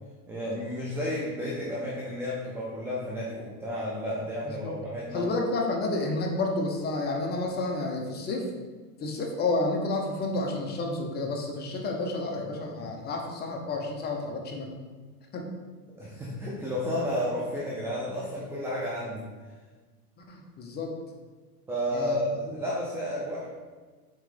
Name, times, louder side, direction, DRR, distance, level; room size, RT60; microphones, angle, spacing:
voice 1, 0.3-5.2 16.0-19.2 21.7-23.5, equal, 5° right, -5 dB, 0.4 m, -32 dB
voice 2, 5.1-8.5 9.0-14.8 15.3-15.5 20.3-21.0 21.9-22.2, left 2 dB, 20° left, 1 dB, 0.8 m, -30 dB
7.5 x 3.2 x 5.1 m, 1.4 s
supercardioid pair, 140°, 49 cm